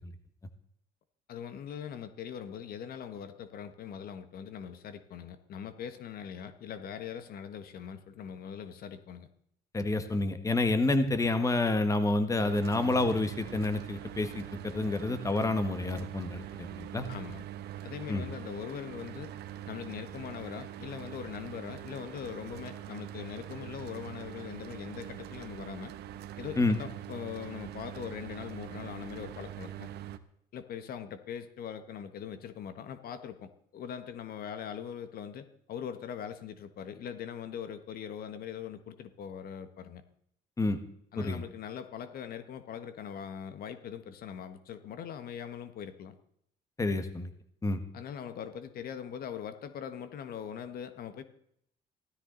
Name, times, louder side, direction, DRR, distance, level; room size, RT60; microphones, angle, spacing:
voice 1, 1.3-9.3 17.1-17.5 17.8-19.3 19.7-25.9 26.4-29.9 30.5-40.0 41.1-46.1 47.9-51.2, left 8 dB, 60° left, 10 dB, 1.5 m, -41 dB
voice 2, 9.7-17.1 18.1-18.3 26.6-26.8 40.6-40.8 41.2-41.4 46.8-47.3 47.6-47.8, left 2 dB, 20° left, 9 dB, 1.6 m, -29 dB
Mechanical fan, 12.4-30.2, right 12 dB, 75° right, 1.2 m, -43 dB
16.0 x 13.5 x 4.0 m, 0.71 s
cardioid pair, 110°, 17 cm